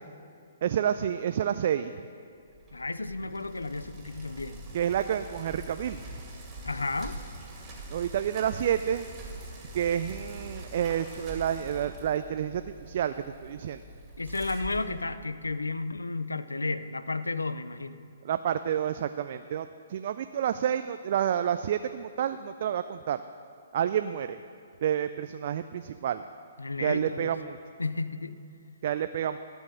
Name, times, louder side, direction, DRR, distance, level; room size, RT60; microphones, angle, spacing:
voice 1, 0.6-1.9 4.7-6.0 7.9-9.1 9.7-13.1 13.4-13.8 18.2-23.2 23.7-24.4 24.8-26.2 26.8-27.6 28.8-29.4, right 9 dB, 50° right, 10 dB, 0.3 m, -29 dB
Bicycle, 2.5-15.6, right 1 dB, 25° right, 2.4 m, -44 dB
voice 2, 2.7-4.6 6.6-7.2 14.2-18.0 26.6-27.3 27.8-28.4, left 3 dB, 85° left, 13 dB, 0.5 m, -33 dB
13.5 x 6.3 x 6.5 m, 2.3 s
figure-of-eight pair, 130°, 0 cm